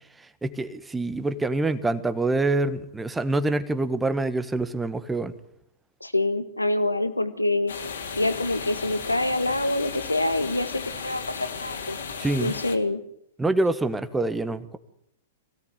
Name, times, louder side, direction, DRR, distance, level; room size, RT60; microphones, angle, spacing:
voice 1, 0.2-5.3 12.2-12.5 13.4-14.8, right 2 dB, 10° right, 11 dB, 1.5 m, -26 dB
voice 2, 6.0-7.7 8.2-12.0 12.4-13.0, left 2 dB, 85° left, 12 dB, 1.7 m, -26 dB
sound 1, 7.7-12.8, left 5 dB, 65° left, 3.0 m, -35 dB
23.5 x 17.0 x 9.3 m, 0.74 s
figure-of-eight pair, 105°, 0 cm